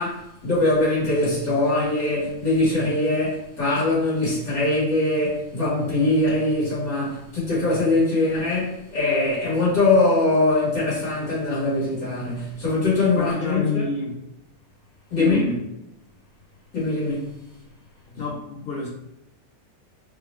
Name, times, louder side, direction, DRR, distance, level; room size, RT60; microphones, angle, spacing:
voice 1, 0.0-13.8 15.1-15.5 16.7-17.3, left 2 dB, 80° left, 1.9 m, -22 dB
voice 2, 13.1-14.2 15.1-15.7 18.1-18.9, left 3 dB, 60° left, 0.6 m, -28 dB
3.5 x 2.2 x 4.2 m
omnidirectional pair, 1.5 m